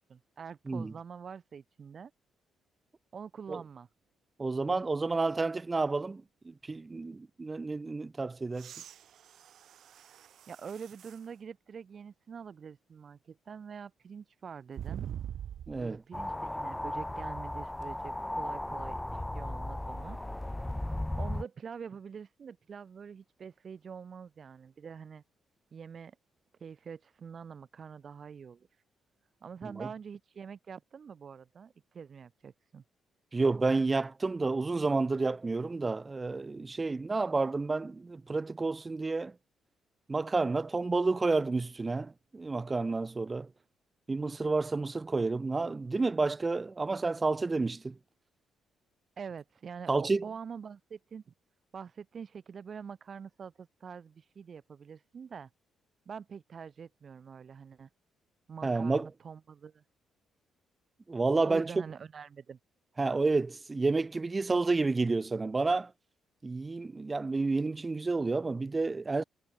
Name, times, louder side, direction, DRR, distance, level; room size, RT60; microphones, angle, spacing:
voice 1, 0.0-2.1 3.1-3.9 10.5-15.0 15.8-20.2 21.2-25.2 25.7-26.2 26.6-28.7 29.4-32.8 49.2-51.3 51.7-55.5 56.1-57.9 58.5-59.8 61.4-62.6, right 6 dB, 45° right, 1.9 m, -45 dB
voice 2, 4.4-8.7 15.7-16.0 29.8-29.9 33.3-39.3 40.1-43.5 44.1-48.0 49.9-50.3 58.6-59.1 61.1-61.7 63.0-65.9 66.4-69.2, right 3 dB, 25° right, 0.6 m, -30 dB
sound 1, 8.5-11.3 11.9-12.0 14.7-16.0 17.8-17.9, right 10 dB, 70° right, 3.0 m, -44 dB
sound 2, 16.1-21.4, left 1 dB, 10° left, 2.1 m, -36 dB
cardioid pair, 90°, 0 cm